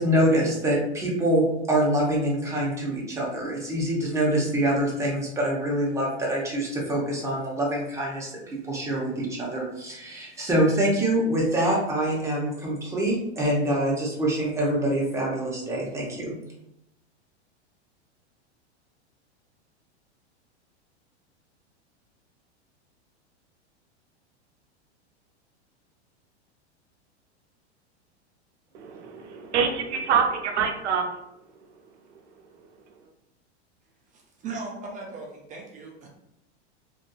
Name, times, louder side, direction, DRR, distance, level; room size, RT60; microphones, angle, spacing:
voice 1, 0.0-16.4, right 1 dB, 10° right, -4 dB, 0.8 m, -25 dB
voice 2, 28.7-31.0, right 6 dB, 80° right, 4 dB, 0.6 m, -25 dB
voice 3, 34.1-36.1, right 3 dB, 25° right, -1 dB, 0.4 m, -38 dB
2.7 x 2.6 x 2.3 m, 0.83 s
hypercardioid pair, 115°, 34 cm